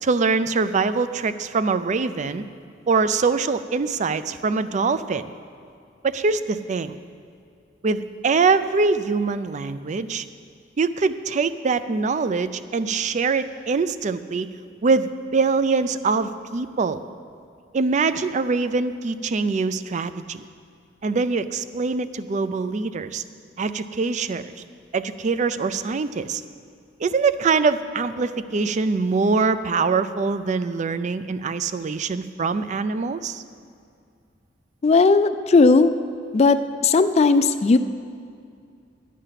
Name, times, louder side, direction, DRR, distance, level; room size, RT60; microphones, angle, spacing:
voice 1, 0.0-2.4 2.9-5.3 6.0-6.9 7.8-10.2 10.8-14.5 14.8-17.0 17.7-20.4 21.0-23.2 23.6-24.4 24.9-26.4 27.0-33.4, right 4 dB, 40° right, 13 dB, 0.4 m, -23 dB
voice 2, 34.8-35.9 36.3-37.8, left 3 dB, 35° left, 11 dB, 0.3 m, -16 dB
12.5 x 8.3 x 5.7 m, 2.3 s
head